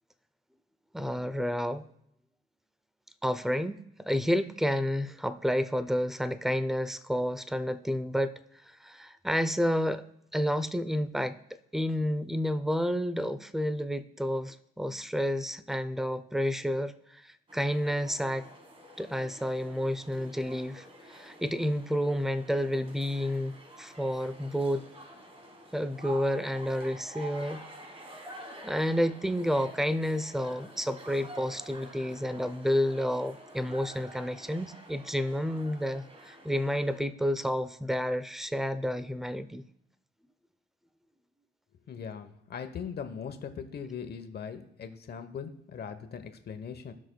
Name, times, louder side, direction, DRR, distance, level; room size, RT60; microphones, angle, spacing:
voice 1, 0.9-1.8 3.2-8.3 8.8-10.0 10.3-11.4 11.7-18.5 19.0-24.8 25.7-27.6 28.6-39.6, equal, ahead, 12 dB, 0.5 m, -30 dB
Huge university indoor hallway ambience, 17.5-37.0, right 1 dB, 30° right, 1.6 m, -49 dB
voice 2, 41.9-46.9, left 7 dB, 55° left, 8 dB, 1.0 m, -40 dB
18.0 x 6.2 x 2.3 m, 0.75 s
cardioid pair, 90°, 20 cm